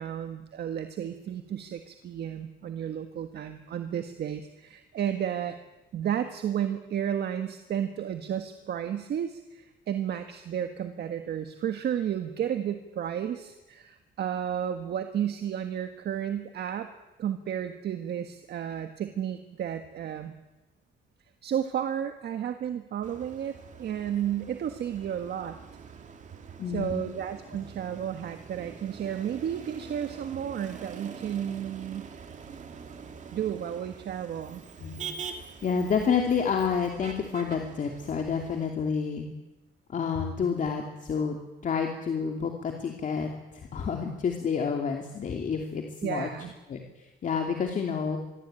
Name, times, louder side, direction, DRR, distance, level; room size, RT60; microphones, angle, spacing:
voice 1, 0.0-5.6 5.9-16.9 17.2-20.3 21.4-25.6 26.7-32.1 33.3-34.6 46.0-46.5, right 9 dB, 55° right, 7 dB, 1.7 m, -32 dB
Motor vehicle (road), 23.0-38.7, right 6 dB, 35° right, 2.5 m, -45 dB
voice 2, 26.6-27.0 34.8-35.0 35.6-39.3 39.9-41.4 41.6-46.3 46.7-48.2, left 6 dB, 40° left, 2 dB, 2.8 m, -29 dB
26.0 x 22.5 x 9.1 m, 1.1 s
cardioid pair, 165°, 20 cm